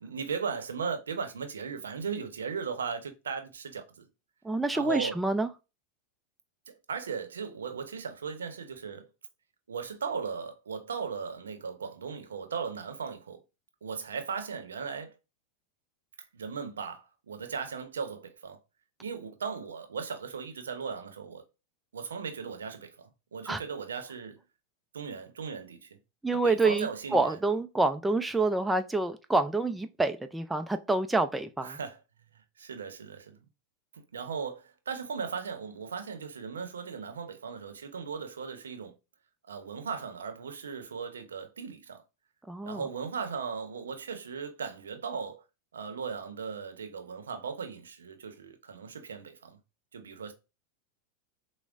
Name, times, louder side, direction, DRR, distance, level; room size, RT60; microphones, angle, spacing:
voice 1, 0.0-4.0 4.7-5.2 6.7-9.1 9.7-13.4 13.8-15.1 16.2-18.6 19.0-21.4 21.9-24.4 24.9-26.0 26.3-27.4 31.6-32.0 32.3-33.4 34.1-39.0 39.5-42.0 42.6-45.4 45.7-49.6 49.9-50.3, right 6 dB, 85° right, 0.7 m, -37 dB
voice 2, 4.4-5.5 23.5-23.6 26.2-31.8 42.5-42.8, right 3 dB, 5° right, 0.4 m, -27 dB
6.0 x 2.1 x 2.4 m
hypercardioid pair, 95°, 0 cm